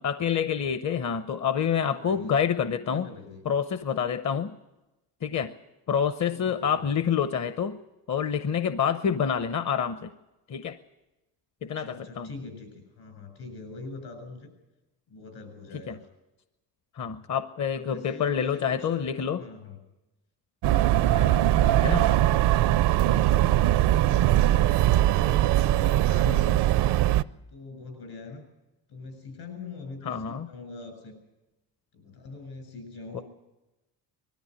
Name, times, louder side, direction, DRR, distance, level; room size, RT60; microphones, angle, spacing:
voice 1, 0.0-3.1 3.4-4.5 5.2-5.5 5.9-7.8 8.1-10.1 10.5-10.8 11.6-12.3 15.9-16.0 16.9-19.4 21.8-22.1 26.3-26.5 30.0-30.5 33.1-33.2, left 7 dB, 40° left, 11 dB, 0.8 m, -27 dB
voice 2, 1.6-2.4 2.7-3.4 6.3-6.9 11.6-14.5 15.1-16.1 17.6-19.8 20.8-23.7 24.0-27.0 27.5-28.5 28.9-31.2 31.9-33.2, left 3 dB, 75° left, 8 dB, 7.3 m, -43 dB
sound 1, 20.6-27.2, right 13 dB, 70° right, 0.7 m, -21 dB
20.5 x 13.5 x 9.9 m, 1.0 s
cardioid pair, 90°, 42 cm